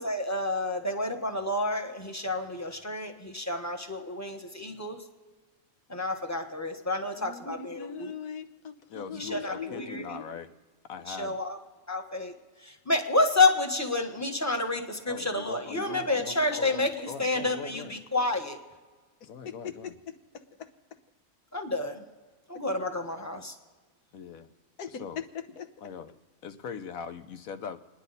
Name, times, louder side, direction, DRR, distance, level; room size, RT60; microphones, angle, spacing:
voice 1, 0.0-5.0 5.9-8.1 9.1-10.0 11.1-11.6 11.9-12.3 12.6-18.6 21.5-22.0 22.5-23.6, left 2 dB, 10° left, 3 dB, 1.1 m, -29 dB
voice 2, 7.2-10.2 19.2-19.3 19.6-19.9 20.3-20.7 24.8-25.2 25.6-25.7, left 6 dB, 80° left, 7 dB, 1.5 m, -40 dB
voice 3, 8.9-10.5 10.9-11.4 15.1-17.9 19.2-19.9 24.1-24.5 25.0-25.2 25.8-26.1 26.4-27.8, left 6 dB, 65° left, 9 dB, 1.2 m, -41 dB
30.0 x 10.0 x 4.1 m, 1.4 s
omnidirectional pair, 1.6 m